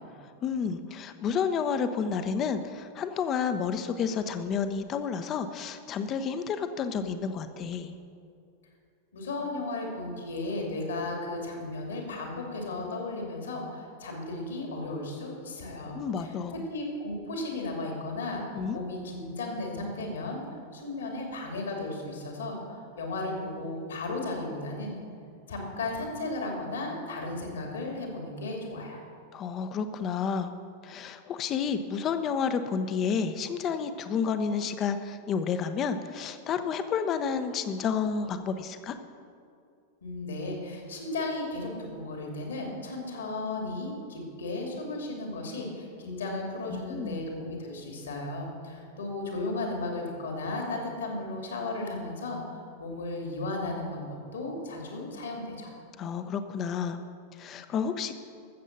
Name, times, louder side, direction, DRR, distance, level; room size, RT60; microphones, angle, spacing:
voice 1, 0.4-7.9 15.9-16.6 18.5-18.8 29.3-30.5 30.8-39.0 46.7-47.2 56.0-57.0 57.4-58.1, left 6 dB, 30° left, 9 dB, 0.8 m, -30 dB
voice 2, 9.1-20.4 20.7-24.9 25.5-29.0 40.0-55.7, left 2 dB, 65° left, 1 dB, 2.5 m, -35 dB
13.5 x 7.5 x 6.7 m, 2.4 s
figure-of-eight pair, 90°, 0 cm